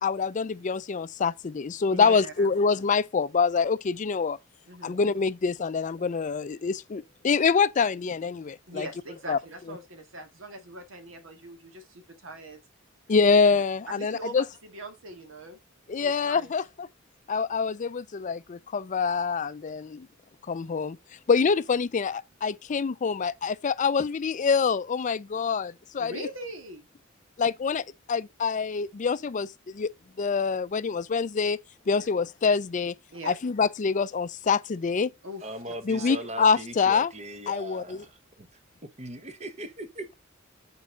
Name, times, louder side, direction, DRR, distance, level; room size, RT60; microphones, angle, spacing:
voice 1, 0.0-4.4 4.8-8.9 9.3-9.4 13.1-14.4 15.9-16.9 17.3-20.1 20.5-21.0 21.3-26.3 27.4-29.9 30.2-31.6 31.9-32.9 33.3-35.1 35.9-37.1 37.5-38.0, left 5 dB, 40° left, 0.4 m, -25 dB
voice 2, 1.9-2.5 4.7-5.0 8.7-12.6 13.5-13.6 14.0-15.6 16.0-16.5 26.0-26.8 31.9-32.1 33.1-33.3 35.2-36.2, right 1 dB, 75° right, 1.9 m, -41 dB
voice 3, 35.4-38.5 38.8-40.1, right 1 dB, 35° right, 1.1 m, -39 dB
6.4 x 4.6 x 5.2 m
head